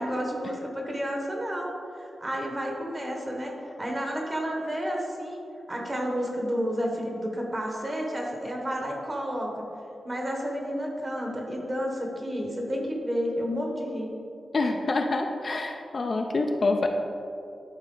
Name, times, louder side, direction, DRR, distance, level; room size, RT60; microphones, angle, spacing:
voice 1, 0.0-5.4 5.7-9.6 10.0-14.1, equal, 20° right, 0 dB, 1.0 m, -31 dB
voice 2, 14.5-16.9, left 3 dB, 35° left, 3 dB, 0.4 m, -26 dB
11.5 x 4.1 x 3.8 m, 2.7 s
wide cardioid pair, 165°, 0 cm